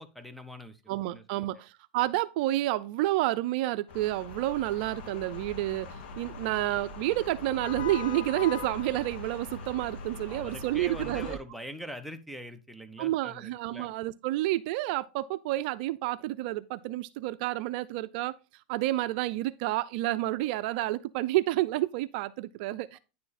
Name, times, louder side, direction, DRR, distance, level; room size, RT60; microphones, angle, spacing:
voice 1, 0.0-0.8 1.1-1.5 10.3-13.9, equal, ahead, 0.9 m, -43 dB
voice 2, 0.9-11.4 13.0-18.3 18.7-23.0, right 16 dB, 60° right, 0.5 m, -30 dB
sound 1, 3.9-11.4, left 4 dB, 70° left, 1.9 m, -41 dB
9.8 x 4.7 x 4.2 m
supercardioid pair, 130°, 6 cm